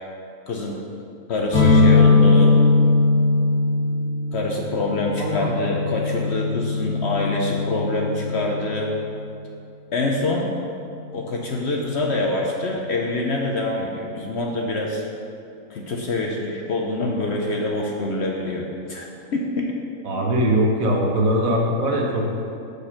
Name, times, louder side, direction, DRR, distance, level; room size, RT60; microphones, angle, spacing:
voice 1, 0.5-0.8 1.3-2.5 4.3-8.9 9.9-10.5 11.1-15.0 15.7-19.1 19.3-19.7, left 2 dB, 60° left, 0 dB, 0.8 m, -25 dB
sound 1, 1.5-9.1, left 3 dB, 75° left, 2.1 m, -20 dB
voice 2, 5.2-5.7 20.0-22.3, equal, 65° right, 0 dB, 1.3 m, -21 dB
6.5 x 5.0 x 5.7 m, 2.6 s
omnidirectional pair, 1.6 m